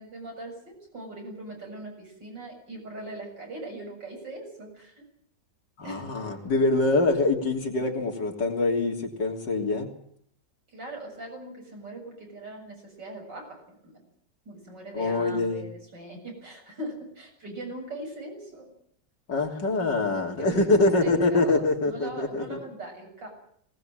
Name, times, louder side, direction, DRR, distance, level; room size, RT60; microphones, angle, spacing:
voice 1, 0.0-5.0 5.8-6.0 10.7-14.0 14.5-18.7 20.4-23.3, right 2 dB, 75° right, 2 dB, 7.9 m, -40 dB
voice 2, 5.8-9.9 14.9-15.6 19.3-22.6, left 2 dB, 75° left, 1 dB, 3.8 m, -24 dB
19.5 x 19.5 x 9.0 m, 0.67 s
omnidirectional pair, 1.9 m